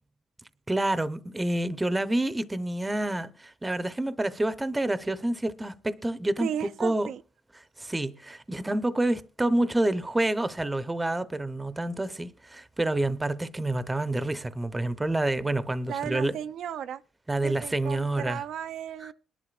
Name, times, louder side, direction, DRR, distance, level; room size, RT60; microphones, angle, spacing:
voice 1, 0.7-6.5 6.8-7.1 7.8-16.3 17.3-18.4 19.0-19.1, right 1 dB, 15° right, 0.8 m, -28 dB
voice 2, 6.4-7.2 15.9-17.0 17.4-19.1, right 9 dB, 75° right, 0.5 m, -35 dB
21.0 x 11.0 x 2.4 m
cardioid pair, 90°, 0 cm